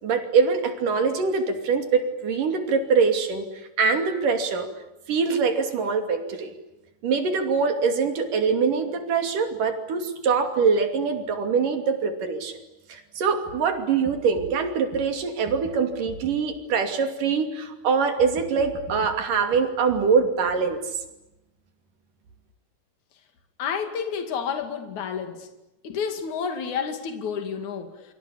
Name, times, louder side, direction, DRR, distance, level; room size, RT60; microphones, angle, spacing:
voice 1, 0.0-3.5 3.8-4.7 5.1-6.5 7.0-12.5 12.9-20.8, right 5 dB, 80° right, 6 dB, 4.4 m, -23 dB
voice 2, 23.6-25.5 25.8-28.0, left 6 dB, 65° left, 6 dB, 3.7 m, -30 dB
28.0 x 25.0 x 8.6 m, 0.94 s
omnidirectional pair, 3.7 m